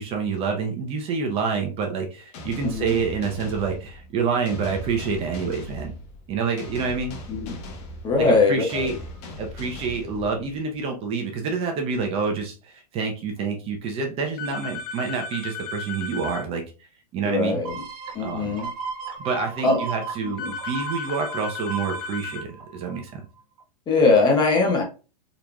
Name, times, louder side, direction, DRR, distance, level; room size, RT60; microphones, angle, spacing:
voice 1, 0.0-5.9 6.3-7.2 8.3-8.9 9.4-16.6 17.1-17.6 18.2-18.5 19.2-23.2, right 5 dB, 30° right, 3 dB, 0.7 m, -27 dB
sound 1, 2.3-10.8, left 2 dB, 45° left, 1.1 m, -39 dB
voice 2, 2.6-3.0 7.3-7.5 8.0-8.9 17.2-17.8 18.1-18.7 19.6-19.8 20.2-20.5 23.9-24.8, left 3 dB, 20° left, 1 dB, 0.9 m, -21 dB
sound 2, 14.4-16.5 20.4-22.5, left 4 dB, 65° left, 0.8 m, -34 dB
sound 3, 17.6-23.1 23.6-23.7, right 5 dB, 65° right, 1.3 m, -36 dB
3.9 x 3.0 x 2.3 m, 0.33 s
supercardioid pair, 140°, 20 cm